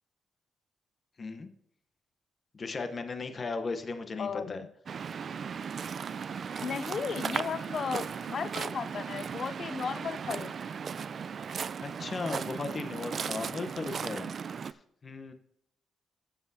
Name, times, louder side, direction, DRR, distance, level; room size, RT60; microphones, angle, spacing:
voice 1, 1.2-1.5 2.5-4.6 11.8-15.3, left 3 dB, 40° left, 7 dB, 0.9 m, -37 dB
voice 2, 4.2-4.7 6.6-10.6, left 6 dB, 55° left, 14 dB, 0.5 m, -35 dB
Waves surf, 4.9-14.7, right 6 dB, 55° right, 0.4 m, -36 dB
Trumpet, 6.3-11.5, left 3 dB, 85° left, 4.6 m, -57 dB
15.0 x 7.6 x 2.7 m, 0.76 s
cardioid pair, 90°, 0 cm